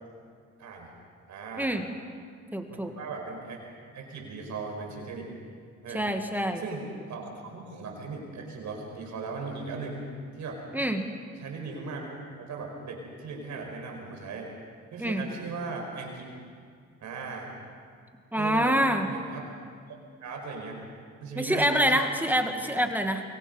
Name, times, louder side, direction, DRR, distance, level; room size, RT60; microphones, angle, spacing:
voice 1, 1.3-1.7 2.7-3.6 3.9-5.3 5.8-6.1 6.6-10.1 10.4-10.6 11.4-14.5 14.9-16.2 17.0-17.5 18.4-18.7 19.1-19.5 20.2-20.8 21.2-22.2 22.5-22.6, right 4 dB, 70° right, 1 dB, 5.2 m, -38 dB
voice 2, 2.5-2.9 5.9-6.6 10.7-11.1 15.0-15.2 18.3-19.1 21.4-23.2, equal, 5° right, 5 dB, 1.7 m, -26 dB
25.0 x 23.0 x 5.4 m, 2.1 s
cardioid pair, 90°, 30 cm